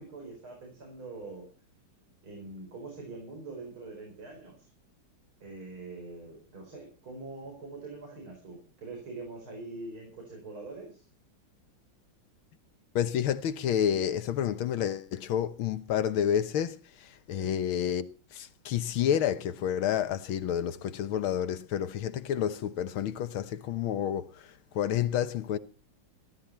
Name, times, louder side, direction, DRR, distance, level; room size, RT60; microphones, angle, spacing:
voice 1, 0.0-1.5 2.2-4.7 5.4-11.1 17.3-17.5, right 3 dB, 85° right, 5.8 m, -44 dB
voice 2, 13.0-24.5 24.7-25.6, left 9 dB, 85° left, 1.9 m, -29 dB
15.0 x 14.0 x 4.3 m
omnidirectional pair, 2.2 m